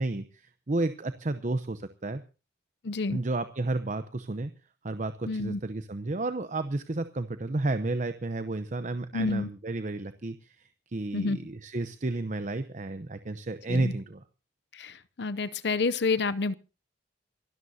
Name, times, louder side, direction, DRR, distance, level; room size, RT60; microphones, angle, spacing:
voice 1, 0.0-2.2 3.1-4.5 4.8-10.6 10.9-14.2, right 2 dB, 45° right, 0.8 m, -32 dB
voice 2, 2.8-3.2 5.3-5.6 9.1-9.5 11.1-11.4 13.7-13.9 14.7-16.5, left 3 dB, 65° left, 0.6 m, -29 dB
27.0 x 13.0 x 2.8 m
head